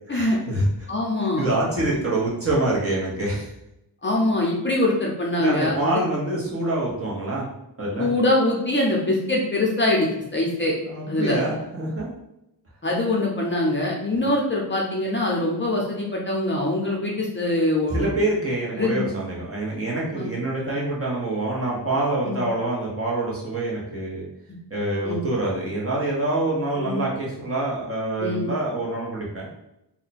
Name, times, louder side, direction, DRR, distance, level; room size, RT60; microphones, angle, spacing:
voice 1, 0.1-0.7 1.4-3.5 5.4-7.5 7.8-8.1 10.8-12.1 17.9-24.3 24.7-29.5, right 2 dB, 35° right, -4 dB, 0.9 m, -26 dB
voice 2, 0.9-1.5 1.9-2.0 4.0-5.7 8.0-10.7 11.1-11.4 12.8-18.1 18.8-19.1 20.2-20.3 22.2-22.4 25.0-25.2 26.8-27.0 28.2-28.5, left 2 dB, 30° left, -3 dB, 0.6 m, -23 dB
2.7 x 2.2 x 4.1 m, 0.85 s
wide cardioid pair, 130°, 41 cm